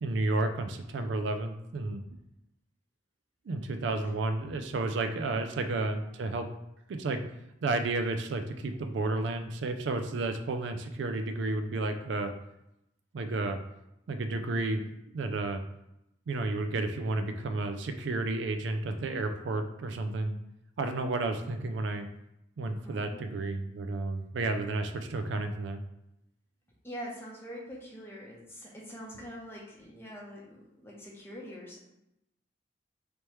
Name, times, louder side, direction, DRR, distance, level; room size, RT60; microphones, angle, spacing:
voice 1, 0.0-2.2 3.5-6.5 6.9-7.2 7.6-12.3 13.1-13.6 14.1-15.6 16.3-20.4 20.8-22.1 22.6-25.8 29.1-29.3, right 2 dB, 75° right, 7 dB, 0.4 m, -32 dB
voice 2, 5.2-5.7 22.8-23.3 26.8-31.8, equal, 10° left, -3 dB, 0.7 m, -44 dB
3.3 x 3.0 x 3.0 m, 0.84 s
head